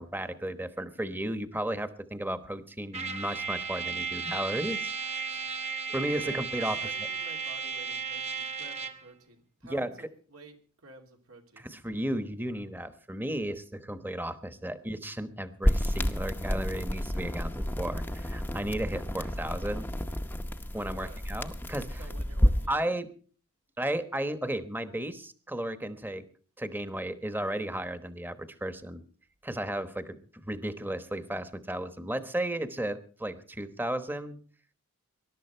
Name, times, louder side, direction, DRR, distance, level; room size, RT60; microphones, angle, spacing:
voice 1, 0.0-5.3 5.9-6.8 9.7-9.9 11.7-19.9 20.7-22.0 22.7-23.1 23.8-26.2 26.6-29.0 29.4-30.2 30.5-34.4, right 1 dB, 10° right, 11 dB, 1.1 m, -34 dB
Trumpet, 2.9-9.1, right 5 dB, 30° right, 1.3 m, -34 dB
voice 2, 6.2-11.7 20.9-21.2 22.0-22.8, right 3 dB, 85° right, 3 dB, 2.9 m, -51 dB
sound 1, 15.6-22.7, equal, 10° left, 0.8 m, -30 dB
20.5 x 11.5 x 4.4 m, 0.42 s
head